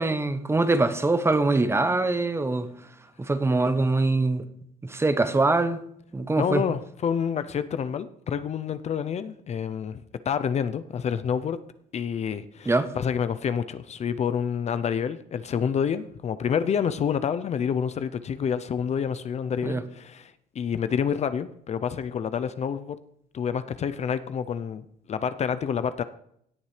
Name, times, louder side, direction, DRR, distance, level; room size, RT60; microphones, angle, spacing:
voice 1, 0.0-2.7 3.2-4.5 4.8-5.8 6.1-6.6 12.7-12.9 19.6-19.8, right 2 dB, 15° right, 0.8 m, -23 dB
voice 2, 6.4-10.0 10.3-11.6 11.9-23.0 23.3-26.0, left 7 dB, 40° left, 0.6 m, -28 dB
17.0 x 7.1 x 3.3 m
cardioid pair, 110°, 17 cm